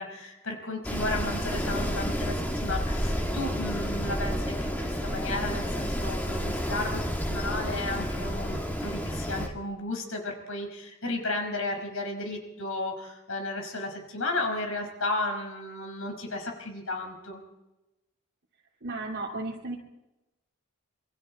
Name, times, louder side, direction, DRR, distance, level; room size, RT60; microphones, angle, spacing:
voice 1, 0.0-17.4, left 2 dB, 70° left, 3 dB, 5.1 m, -34 dB
Wind, 0.8-9.5, equal, 10° left, 2.1 m, -30 dB
voice 2, 18.8-19.8, right 2 dB, 55° right, -5 dB, 2.5 m, -34 dB
27.5 x 23.5 x 4.3 m, 0.98 s
head